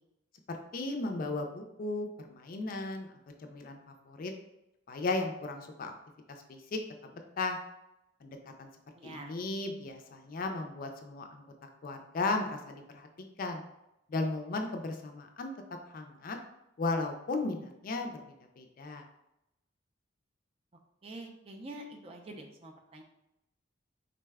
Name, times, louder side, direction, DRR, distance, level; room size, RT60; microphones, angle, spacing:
voice 1, 0.5-3.1 3.4-3.8 4.1-4.3 4.9-5.9 6.3-6.8 7.1-7.6 8.2-8.7 9.0-11.4 11.8-13.1 13.4-13.6 14.1-15.5 15.9-16.4 16.8-18.1 18.6-19.0, left 3 dB, 45° left, 4 dB, 0.4 m, -35 dB
voice 2, 8.9-9.4 21.0-23.0, right 1 dB, 30° right, 2 dB, 0.4 m, -46 dB
3.9 x 2.2 x 3.4 m, 0.87 s
head